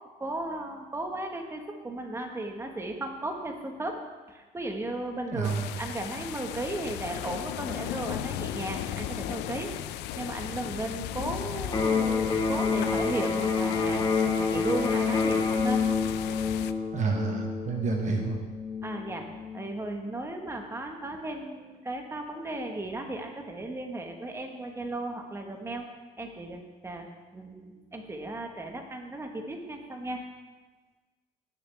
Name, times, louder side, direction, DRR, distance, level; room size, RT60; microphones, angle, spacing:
voice 1, 0.2-4.0 4.3-14.0 14.4-15.8 18.8-19.3 19.5-25.9 26.2-30.2, right 2 dB, 15° right, 3 dB, 1.4 m, -35 dB
sound 1, 5.4-16.7, left 12 dB, 90° left, 0.5 m, -37 dB
Electric guitar, 11.7-19.7, left 5 dB, 25° left, 2.3 m, -28 dB
voice 2, 16.9-18.4, right 5 dB, 45° right, 3 dB, 0.9 m, -29 dB
18.0 x 6.8 x 3.5 m, 1.3 s
cardioid pair, 110°, 17 cm